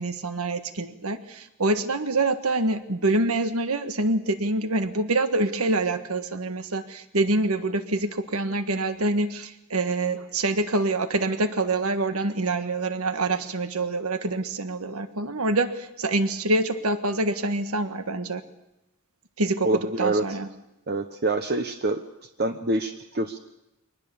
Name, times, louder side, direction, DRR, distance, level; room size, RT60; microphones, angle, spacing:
voice 1, 0.0-18.4 19.4-19.7 20.0-20.5, right 2 dB, 75° right, 9 dB, 1.5 m, -26 dB
voice 2, 19.6-20.4 20.9-22.0 22.4-23.4, right 2 dB, 45° right, 7 dB, 1.0 m, -26 dB
24.0 x 19.5 x 7.1 m, 0.92 s
head